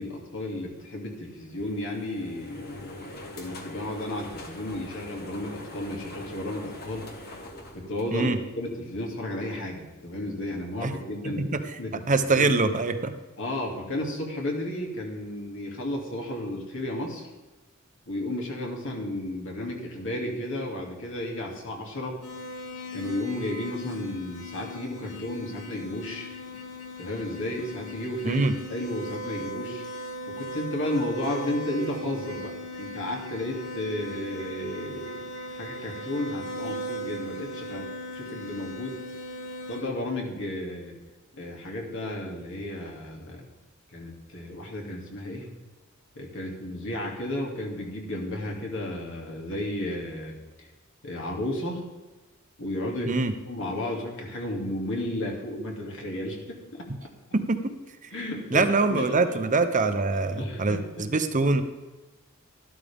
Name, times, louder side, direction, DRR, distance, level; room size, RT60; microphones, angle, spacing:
voice 1, 0.0-7.1 7.7-11.4 11.8-12.0 12.4-12.7 13.4-17.3 18.1-22.2 22.9-26.3 27.0-28.4 28.7-29.8 30.3-37.9 38.1-39.0 39.7-40.9 41.3-43.5 43.9-45.5 46.1-50.3 51.0-51.8 52.6-53.2 53.4-57.1 58.1-59.1 60.4-61.1, left 1 dB, 65° left, 0 dB, 2.6 m, -33 dB
sound 1, 1.4-8.7, left 1 dB, 50° left, 1.7 m, -43 dB
voice 2, 11.2-11.6 12.1-13.1 28.2-28.5 53.1-53.3 57.3-57.6 58.5-61.6, right 3 dB, 35° right, 9 dB, 0.8 m, -24 dB
sound 2, 22.2-39.8, equal, 85° left, 2.8 m, -38 dB
12.5 x 12.5 x 3.6 m, 1.2 s
head